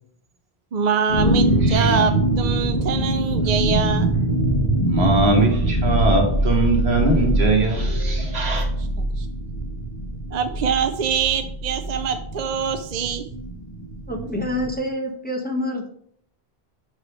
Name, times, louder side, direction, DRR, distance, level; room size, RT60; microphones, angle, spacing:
voice 1, 0.7-4.1 8.8-8.9 9.2-9.3 10.3-13.2, right 6 dB, 55° right, 8 dB, 0.5 m, -24 dB
sound 1, 1.1-14.7, right 1 dB, 35° left, 1.1 m, -23 dB
voice 2, 1.6-1.9 4.9-8.7, right 2 dB, 80° right, 2 dB, 1.6 m, -21 dB
voice 3, 14.1-15.9, left 1 dB, 10° left, 1 dB, 0.8 m, -27 dB
7.3 x 3.3 x 5.0 m, 0.66 s
omnidirectional pair, 1.1 m